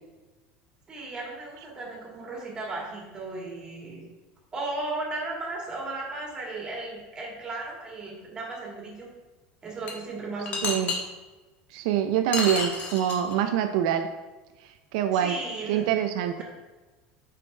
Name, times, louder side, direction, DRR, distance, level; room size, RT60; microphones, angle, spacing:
voice 1, 0.9-4.0 4.5-9.1 9.6-10.7 15.1-15.9, right 2 dB, 20° right, -2 dB, 1.9 m, -35 dB
sound 1, 9.9-10.0 10.5-11.0 12.3-13.3, left 3 dB, 40° left, 1.3 m, -29 dB
voice 2, 10.6-10.9 11.7-14.1 14.9-15.4 15.7-16.4, right 10 dB, 75° right, 7 dB, 0.4 m, -25 dB
8.4 x 5.0 x 3.3 m, 1.2 s
cardioid pair, 150°, 4 cm